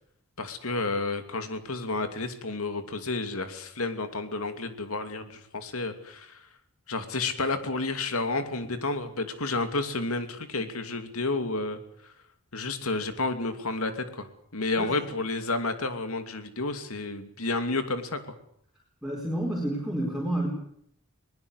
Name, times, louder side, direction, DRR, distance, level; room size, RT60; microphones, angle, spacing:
voice 1, 0.4-6.4 6.9-11.8 12.5-14.3 14.5-18.2, left 3 dB, 85° left, 8 dB, 2.8 m, -31 dB
voice 2, 19.0-20.5, right 1 dB, ahead, -3 dB, 4.7 m, -29 dB
22.0 x 20.5 x 8.2 m, 0.67 s
head